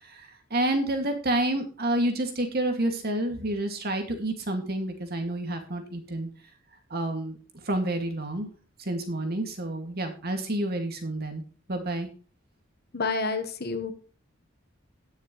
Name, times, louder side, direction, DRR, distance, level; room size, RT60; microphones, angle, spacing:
voice 1, 0.5-6.3 6.9-7.4 7.6-8.5 8.8-11.4 11.7-12.1, right 1 dB, 50° right, 4 dB, 2.2 m, -29 dB
voice 2, 12.9-13.9, left 4 dB, 50° left, 9 dB, 1.3 m, -29 dB
18.0 x 6.5 x 3.2 m, 0.37 s
head